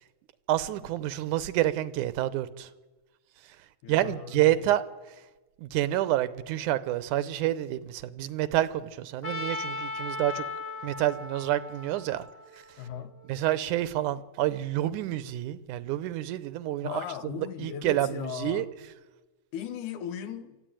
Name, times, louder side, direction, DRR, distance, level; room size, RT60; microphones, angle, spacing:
voice 1, 0.5-2.7 3.9-4.8 5.6-10.5 10.8-12.3 13.3-18.7, right 14 dB, 85° right, 2.3 m, -28 dB
voice 2, 3.8-4.8 12.8-13.2 16.8-18.7 19.5-20.6, left 9 dB, 85° left, 2.7 m, -38 dB
Trumpet, 9.2-13.3, left 3 dB, 20° left, 0.9 m, -37 dB
24.0 x 14.0 x 9.0 m
omnidirectional pair, 3.5 m